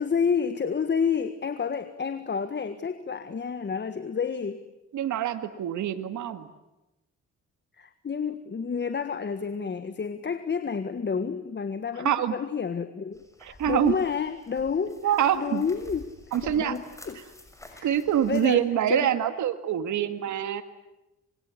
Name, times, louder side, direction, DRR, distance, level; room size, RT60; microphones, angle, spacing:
voice 1, 0.0-4.6 7.8-17.2 17.7-17.9 18.3-19.1, left 6 dB, 35° left, 11 dB, 1.7 m, -30 dB
voice 2, 4.9-6.5 12.0-12.4 13.4-13.9 15.0-15.6 16.3-16.8 17.8-20.6, right 10 dB, 75° right, 9 dB, 2.1 m, -25 dB
sound 1, 13.1-18.6, left 1 dB, 10° left, 6.3 m, -49 dB
27.0 x 22.0 x 9.8 m, 0.96 s
cardioid pair, 90°, 30 cm